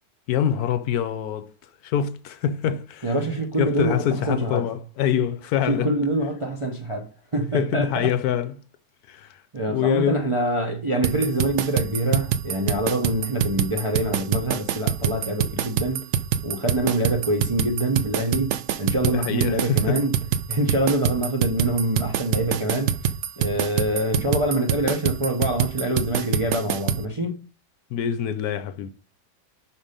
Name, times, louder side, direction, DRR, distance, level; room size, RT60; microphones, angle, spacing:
voice 1, 0.3-1.5 1.8-3.1 3.6-6.0 7.5-8.6 9.1-9.4 9.7-10.3 19.0-20.0 27.9-28.9, left 9 dB, 75° left, 1.1 m, -25 dB
voice 2, 3.0-4.8 5.7-8.1 9.5-16.1 16.4-20.2 20.5-23.0 23.4-27.5, right 1 dB, 30° right, 0.6 m, -25 dB
sound 1, 11.0-27.0, right 9 dB, 85° right, 0.6 m, -25 dB
5.7 x 4.4 x 5.1 m
omnidirectional pair, 1.8 m